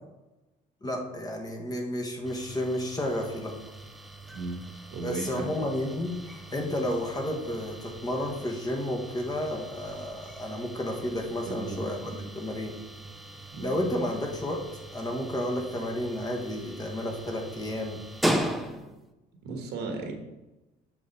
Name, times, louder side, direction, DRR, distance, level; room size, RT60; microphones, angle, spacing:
voice 1, 0.8-3.5 5.0-12.7 13.6-14.6 14.9-18.0, left 1 dB, 20° left, 1 dB, 1.3 m, -31 dB
sound 1, 2.2-19.1, right 1 dB, ahead, 0.5 m, -38 dB
voice 2, 4.9-5.5 11.5-12.3 13.5-13.7 19.4-20.1, right 3 dB, 75° right, 3 dB, 1.3 m, -35 dB
7.4 x 3.8 x 4.1 m, 1.0 s
cardioid pair, 110°, 17 cm